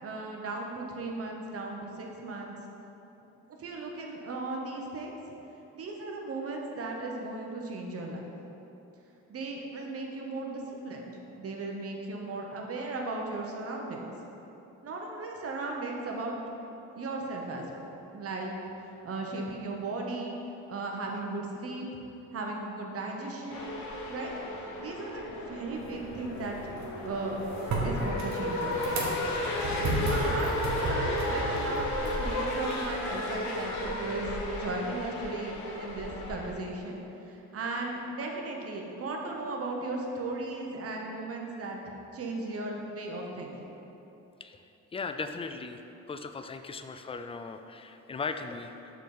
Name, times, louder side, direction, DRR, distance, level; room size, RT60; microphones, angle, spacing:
voice 1, 0.0-2.6 3.6-5.2 5.7-8.3 9.3-11.0 11.4-14.1 14.8-16.3 17.0-17.9 18.1-18.6 19.0-20.3 20.7-21.9 22.3-23.7 24.1-24.3 24.8-26.6 27.0-27.4 27.8-28.9 30.1-43.5, right 2 dB, 50° right, 0 dB, 1.0 m, -36 dB
sound 1, 23.5-36.5, left 1 dB, 80° left, 1.1 m, -33 dB
sound 2, 25.7-32.7, right 2 dB, 65° right, 1.4 m, -34 dB
voice 2, 44.9-45.8 46.1-48.9, left 4 dB, 20° left, 8 dB, 0.3 m, -38 dB
6.6 x 4.0 x 5.0 m, 3.0 s
cardioid pair, 90°, 30 cm